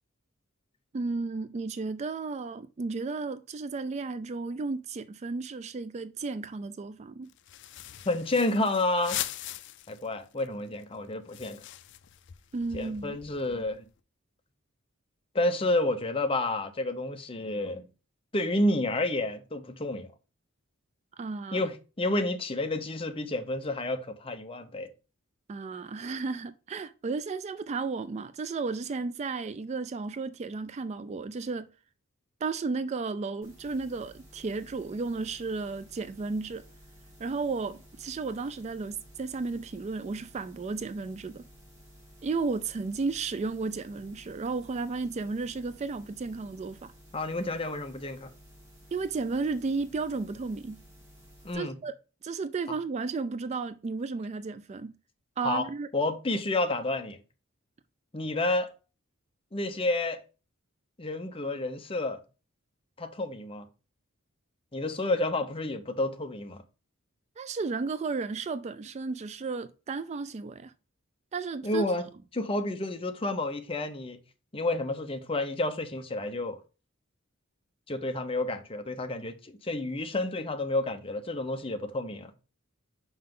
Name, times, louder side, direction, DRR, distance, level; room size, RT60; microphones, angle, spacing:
voice 1, 0.9-7.3 12.5-13.2 21.2-21.7 25.5-31.7 32.4-36.6 37.2-41.4 42.2-46.9 48.9-50.8 51.5-51.9 52.2-54.9 55.4-55.9 67.4-70.7 71.3-71.8, right 4 dB, 30° right, 0.3 m, -33 dB
sound 1, 7.3-10.1 10.4-10.5 10.7-13.9, left 13 dB, 55° left, 0.4 m, -41 dB
voice 2, 8.1-9.2 9.9-11.6 12.7-13.9 15.3-17.9 18.3-20.1 21.5-24.9 47.1-48.3 51.4-51.8 52.7-52.8 55.4-55.7 55.9-57.2 58.1-58.7 59.5-60.2 61.0-62.2 63.0-63.7 64.7-66.6 71.6-72.1 72.3-74.2 74.5-76.6 77.9-82.3, left 2 dB, 25° left, 0.8 m, -30 dB
sound 2, 33.4-51.5, equal, 15° right, 2.6 m, -54 dB
5.7 x 5.6 x 3.7 m
head